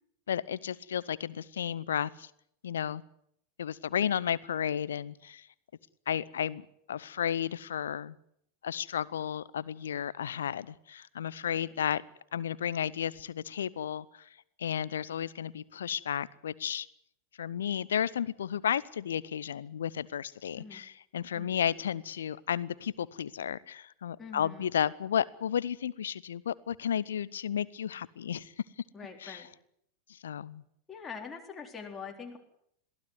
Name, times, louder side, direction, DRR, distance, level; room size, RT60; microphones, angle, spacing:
voice 1, 0.3-2.3 2.6-3.0 3.6-5.5 6.1-8.2 8.6-12.0 12.3-14.3 14.6-16.9 17.4-28.5 29.2-29.4 30.1-30.6, left 9 dB, 65° left, 21 dB, 0.8 m, -33 dB
voice 2, 24.2-24.7 28.9-29.5 30.9-32.4, left 5 dB, 15° left, 1 dB, 3.9 m, -44 dB
22.5 x 15.5 x 9.5 m, 0.72 s
figure-of-eight pair, 90°, 0 cm